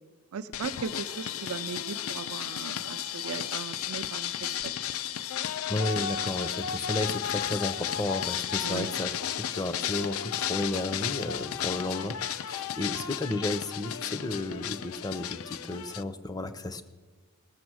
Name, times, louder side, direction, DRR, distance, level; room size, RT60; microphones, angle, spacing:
voice 1, 0.3-4.7 8.6-9.0 11.9-12.1 12.9-13.1, right 6 dB, 75° right, 12 dB, 0.5 m, -38 dB
sound 1, 0.5-16.0, left 10 dB, 75° left, 0.4 m, -33 dB
voice 2, 5.7-16.8, left 2 dB, 15° left, 11 dB, 0.5 m, -33 dB
20.0 x 6.9 x 6.3 m, 1.4 s
head